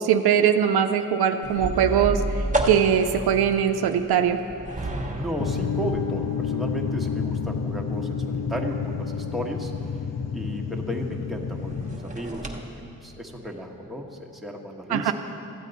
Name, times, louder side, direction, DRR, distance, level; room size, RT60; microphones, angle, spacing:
voice 1, 0.0-4.4 14.9-15.1, right 8 dB, 85° right, 8 dB, 0.5 m, -21 dB
sound 1, 1.4-12.6, right 1 dB, 20° right, 1.1 m, -34 dB
voice 2, 4.8-10.0 10.3-15.1, equal, ahead, -1 dB, 1.2 m, -34 dB
piano uncovered, 5.4-12.0, left 6 dB, 45° left, 0.7 m, -29 dB
13.5 x 8.2 x 4.0 m, 2.9 s
supercardioid pair, 45°, 38 cm